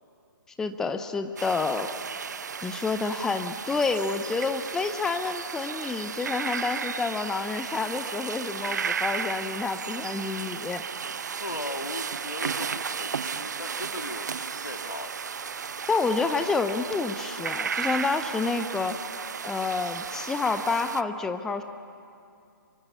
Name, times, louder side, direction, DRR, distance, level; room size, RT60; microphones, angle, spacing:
voice 1, 0.6-1.9 2.6-10.8 15.9-19.0 19.4-21.6, left 4 dB, 5° left, 8 dB, 0.6 m, -29 dB
sound 1, 1.4-21.0, right 6 dB, 55° right, 0.7 m, -34 dB
voice 2, 11.4-15.2, left 2 dB, 75° left, 5 dB, 2.5 m, -38 dB
25.0 x 24.0 x 9.6 m, 2.4 s
figure-of-eight pair, 135°, 12 cm